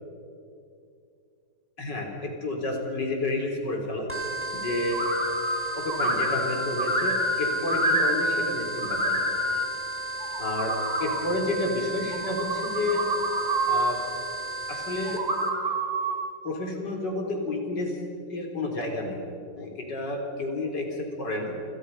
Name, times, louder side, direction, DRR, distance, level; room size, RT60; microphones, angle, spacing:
voice 1, 1.8-4.1 4.5-5.1 5.8-9.2 10.4-10.7 11.0-13.1 13.6-14.0 14.7-15.2 16.4-18.0 18.3-19.2 19.6-21.5, left 2 dB, 70° left, 1 dB, 4.6 m, -30 dB
sound 1, 4.1-15.5, right 2 dB, 5° right, 3.3 m, -35 dB
sound 2, 4.9-5.6 5.9-8.5 8.8-9.7 10.2-11.2 12.1-13.9 15.1-16.2, right 1 dB, 20° right, 3.2 m, -27 dB
29.0 x 27.0 x 5.6 m, 2.5 s
omnidirectional pair, 1.9 m